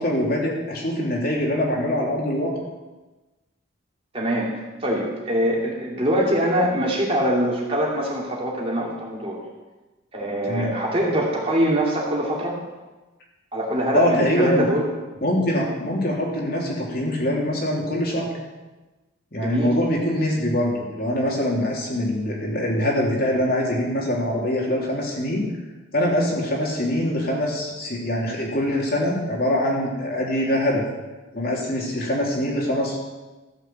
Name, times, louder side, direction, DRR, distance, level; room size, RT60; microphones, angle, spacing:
voice 1, 0.0-2.5 10.5-10.8 13.9-14.7 15.2-18.3 19.3-25.5 25.9-30.8 31.3-33.0, left 1 dB, 45° left, -2 dB, 3.2 m, -23 dB
voice 2, 4.1-9.4 10.1-12.6 13.5-14.9 19.4-19.7, equal, 30° right, -2 dB, 2.6 m, -23 dB
14.5 x 7.3 x 7.8 m, 1.2 s
head